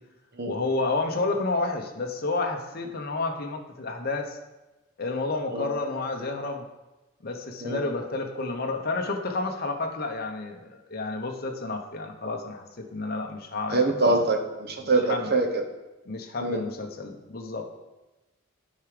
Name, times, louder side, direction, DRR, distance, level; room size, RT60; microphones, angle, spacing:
voice 1, 0.4-4.4 5.0-6.7 7.2-14.2 14.8-15.3 16.1-17.7, left 3 dB, 45° left, 3 dB, 0.8 m, -30 dB
voice 2, 13.7-15.6 16.4-16.6, right 2 dB, 50° right, 4 dB, 1.0 m, -24 dB
9.2 x 4.8 x 5.0 m, 1.1 s
head